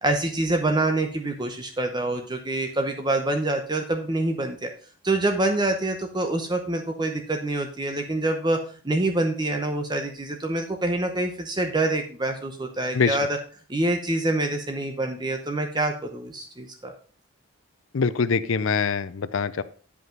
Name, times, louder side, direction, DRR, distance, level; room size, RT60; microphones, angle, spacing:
voice 1, 0.0-4.7 5.0-8.6 8.8-13.3 13.7-16.9, right 2 dB, 20° right, 4 dB, 0.8 m, -26 dB
voice 2, 17.9-19.6, left 5 dB, 65° left, 15 dB, 0.5 m, -24 dB
9.6 x 5.5 x 5.2 m, 0.41 s
head